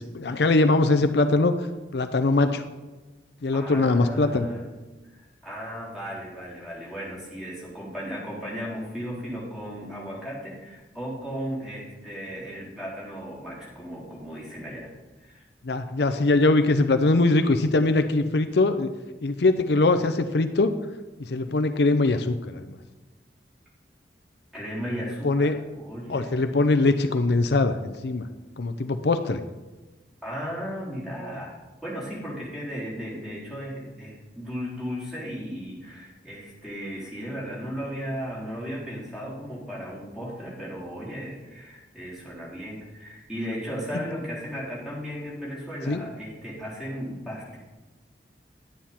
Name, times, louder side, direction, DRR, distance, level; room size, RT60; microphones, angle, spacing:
voice 1, 0.0-1.5 1.9-2.6 3.4-4.5 15.6-18.9 19.2-20.7 21.2-22.8 25.2-25.6 26.1-28.2 28.6-29.4 45.9-46.0, left 2 dB, 70° left, 9 dB, 0.6 m, -22 dB
voice 2, 3.5-4.6 5.4-14.9 15.2-15.4 24.5-26.4 30.2-47.6, equal, 5° right, -7 dB, 3.9 m, -35 dB
11.5 x 9.4 x 4.4 m, 1.2 s
head